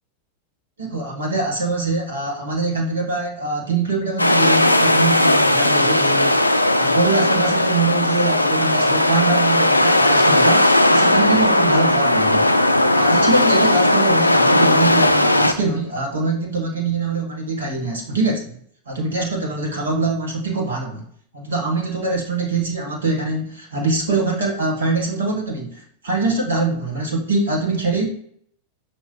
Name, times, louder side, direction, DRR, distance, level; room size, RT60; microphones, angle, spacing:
voice 1, 0.8-6.5 6.7-12.5 12.9-18.6 18.8-21.0 21.3-28.1, right 3 dB, 70° right, -1 dB, 1.3 m, -23 dB
sound 1, 4.2-15.5, left 1 dB, 85° left, 0.3 m, -16 dB
5.8 x 3.0 x 3.0 m, 0.64 s
figure-of-eight pair, 90°, 0 cm